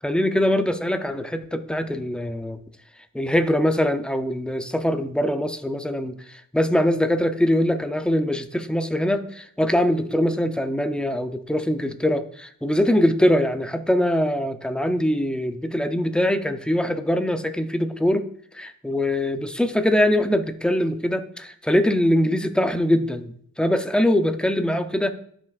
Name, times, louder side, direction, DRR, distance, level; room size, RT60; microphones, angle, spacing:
voice 1, 0.0-2.6 3.1-18.3 18.5-25.1, left 1 dB, 5° left, 8 dB, 0.5 m, -22 dB
11.5 x 5.8 x 2.4 m, 0.63 s
wide cardioid pair, 135°, 32 cm